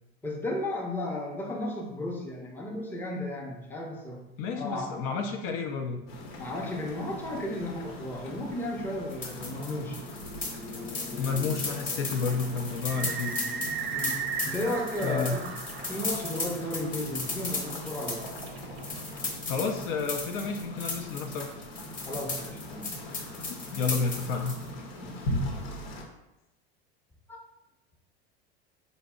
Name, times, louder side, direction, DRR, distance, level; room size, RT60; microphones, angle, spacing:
voice 1, 0.2-5.0 6.4-10.1 13.9-18.3 22.0-22.9 24.9-25.4 27.3-27.4, left 1 dB, 5° left, -1 dB, 0.6 m, -34 dB
voice 2, 4.4-6.0 11.2-13.3 15.0-15.4 19.5-21.5 23.5-24.6, left 5 dB, 55° left, 3 dB, 0.5 m, -31 dB
sound 1, 6.1-26.0, left 1 dB, 70° left, 0.9 m, -40 dB
sound 2, 9.1-24.7, left 3 dB, 25° left, 1.1 m, -36 dB
sound 3, 12.3-21.6, right 7 dB, 70° right, 0.7 m, -38 dB
4.0 x 2.0 x 3.5 m, 0.96 s
hypercardioid pair, 85°, 31 cm